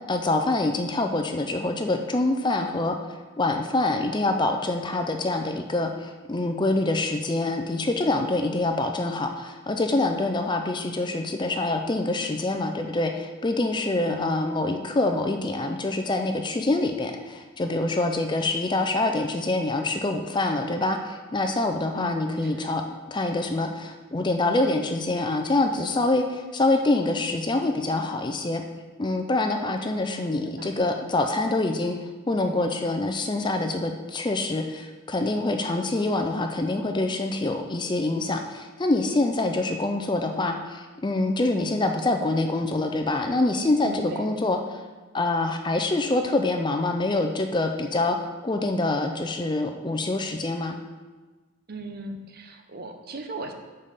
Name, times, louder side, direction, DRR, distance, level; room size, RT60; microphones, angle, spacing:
voice 1, 0.1-3.0 3.4-22.8 23.1-28.6 29.0-32.0 32.3-44.6 45.1-48.2 48.4-50.8, left 2 dB, 20° left, 5 dB, 0.4 m, -25 dB
voice 2, 14.0-14.5 21.9-22.8 30.0-30.8 43.8-44.4 51.7-53.5, right 2 dB, 45° right, 5 dB, 0.7 m, -38 dB
5.5 x 5.4 x 6.6 m, 1.3 s
head